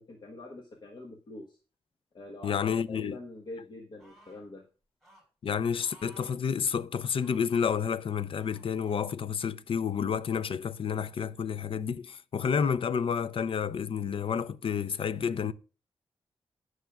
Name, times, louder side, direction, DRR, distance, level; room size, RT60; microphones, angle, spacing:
voice 1, 0.0-1.6 2.1-2.6 2.9-4.7, left 2 dB, 50° left, 1.2 m, -45 dB
voice 2, 2.4-3.2 5.4-15.5, left 7 dB, 65° left, 0.5 m, -30 dB
sound 1, 4.0-4.5 5.0-5.2 5.8-6.4 7.1-7.7 8.3-9.0 9.7-9.8, right 1 dB, ahead, 5.0 m, -57 dB
19.0 x 6.4 x 2.4 m
wide cardioid pair, 95°, 10 cm